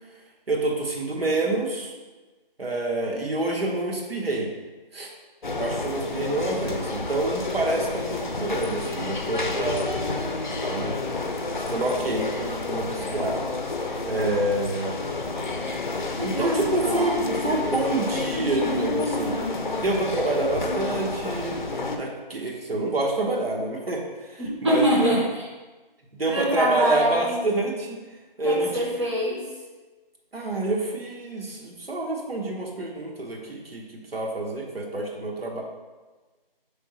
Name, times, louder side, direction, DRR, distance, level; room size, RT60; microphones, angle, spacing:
voice 1, 0.5-1.9 2.6-4.5 4.9-5.1 5.5-9.9 10.7-11.3 11.7-13.4 14.1-15.0 16.2-21.6 21.9-25.1 26.1-28.0 28.4-28.9 30.3-33.8 34.1-35.6, right 2 dB, 80° right, -1 dB, 1.0 m, -27 dB
sound 1, 5.4-22.0, left 3 dB, 55° left, 0.5 m, -30 dB
voice 2, 16.4-17.4 24.4-25.3 26.3-27.4 28.4-29.5, right 1 dB, 30° right, -6 dB, 0.7 m, -25 dB
4.9 x 3.5 x 3.0 m, 1.2 s
figure-of-eight pair, 170°, 29 cm